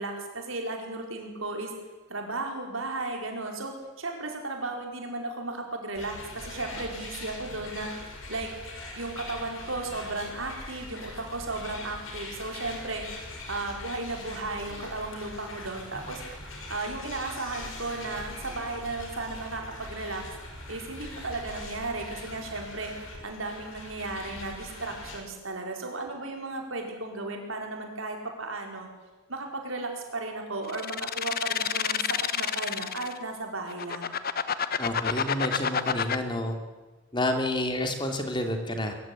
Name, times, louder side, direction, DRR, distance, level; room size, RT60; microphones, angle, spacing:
voice 1, 0.0-1.7 2.1-7.9 8.3-8.5 9.0-13.1 13.5-16.2 16.7-20.2 20.7-22.9 23.2-28.9 29.3-34.1, right 2 dB, 75° right, 2 dB, 4.9 m, -35 dB
sound 1, 5.9-25.2, left 2 dB, 80° left, 6.1 m, -42 dB
sound 2, 30.7-33.2 33.7-36.2, left 7 dB, 50° left, 1.1 m, -28 dB
voice 2, 34.8-36.6 37.1-38.9, left 1 dB, 25° left, 5 dB, 2.8 m, -29 dB
23.0 x 15.0 x 10.0 m, 1.2 s
head